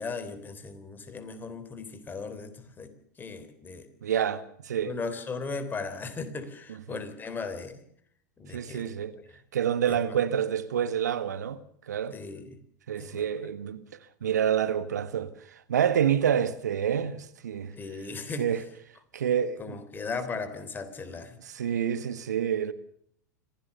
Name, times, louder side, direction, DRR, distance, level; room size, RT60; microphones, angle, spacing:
voice 1, 0.0-3.9 4.8-7.9 8.4-8.9 9.9-10.0 12.1-12.6 12.9-13.2 17.8-18.5 19.6-21.4, left 4 dB, 20° left, 3.4 m, -37 dB
voice 2, 4.0-4.9 6.9-7.0 8.5-9.2 9.5-11.6 11.9-12.2 12.9-13.8 14.2-17.7 18.4-18.6 19.1-19.8 21.4-22.7, right 9 dB, 70° right, 1.4 m, -28 dB
25.5 x 16.5 x 6.8 m
figure-of-eight pair, 90°, 9 cm